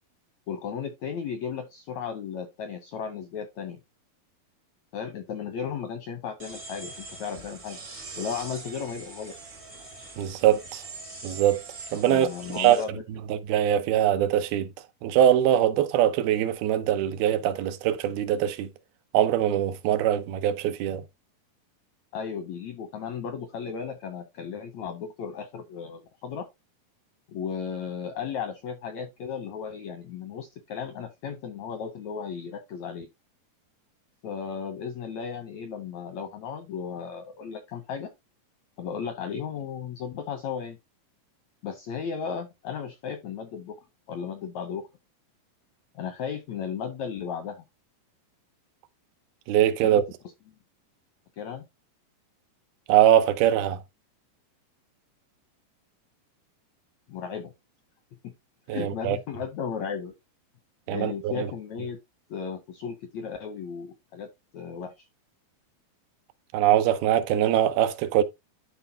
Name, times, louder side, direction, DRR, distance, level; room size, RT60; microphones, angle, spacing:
voice 1, 0.5-3.8 4.9-7.8 8.2-9.3 12.1-13.0 22.1-26.5 27.3-33.1 34.2-38.1 38.8-40.8 41.6-44.9 45.9-47.6 49.8-50.0 51.4-51.6 57.1-57.5 58.7-60.1 60.9-62.0 62.3-65.1, left 7 dB, 80° left, 1.6 m, -35 dB
sound 1, 6.4-12.8, right 3 dB, 65° right, 0.6 m, -42 dB
voice 2, 10.2-10.8 11.2-11.6 11.9-12.8 13.3-14.7 15.0-18.7 19.1-21.0 49.5-50.0 52.9-53.8 58.7-59.2 60.9-61.5 66.5-68.2, right 11 dB, 85° right, 2.6 m, -22 dB
12.0 x 4.2 x 2.7 m
omnidirectional pair, 4.2 m